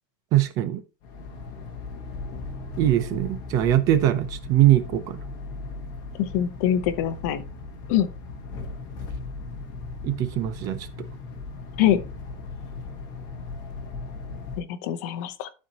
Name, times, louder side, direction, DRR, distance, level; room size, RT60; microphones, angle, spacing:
voice 1, 0.3-0.8 2.8-5.2 10.0-10.8, right 13 dB, 35° right, 0.6 m, -21 dB
sound 1, 1.0-14.6, left 3 dB, 35° left, 1.5 m, -37 dB
voice 2, 6.2-7.4 7.9-8.1 11.8-12.0 14.6-15.5, left 11 dB, 50° left, 0.8 m, -24 dB
12.0 x 4.3 x 2.9 m
supercardioid pair, 175°, 11 cm